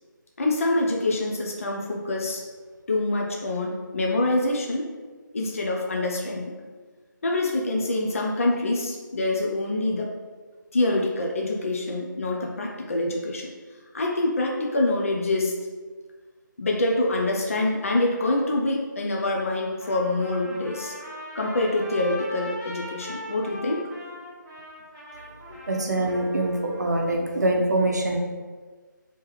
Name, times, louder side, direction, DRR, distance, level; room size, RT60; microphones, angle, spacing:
voice 1, 0.4-2.4 2.9-4.9 5.3-6.5 7.2-10.1 10.7-13.5 13.9-15.5 16.6-20.9 21.3-23.8 25.5-25.6, left 2 dB, 45° left, -1 dB, 0.4 m, -25 dB
Trumpet, 19.8-26.8, left 1 dB, 10° right, 1.0 m, -40 dB
voice 2, 25.7-28.2, right 1 dB, 55° right, 1 dB, 0.6 m, -24 dB
3.2 x 2.9 x 3.0 m, 1.4 s
figure-of-eight pair, 155°, 11 cm